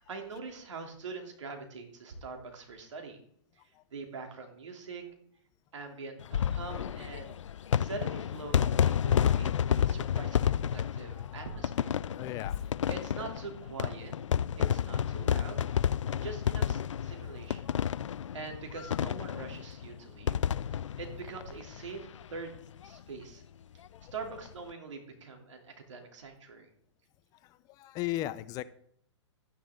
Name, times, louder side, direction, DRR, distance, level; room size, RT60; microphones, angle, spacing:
voice 1, 0.0-3.2 3.6-3.7 3.9-5.0 5.7-7.4 7.8-11.9 12.9-14.1 14.6-15.7 16.2-17.7 18.3-20.4 21.0-22.5 22.8-23.4 24.1-26.7, right 4 dB, 80° right, 3 dB, 3.0 m, -43 dB
sound 1, 6.2-22.2 22.5-22.6 22.8-22.9 24.2-24.5, left 9 dB, 85° left, 0.4 m, -30 dB
voice 2, 12.1-12.9 23.9-24.1 27.4-28.6, left 15 dB, 25° left, 15 dB, 0.4 m, -37 dB
11.5 x 9.9 x 3.7 m, 0.63 s
hypercardioid pair, 135°, 15 cm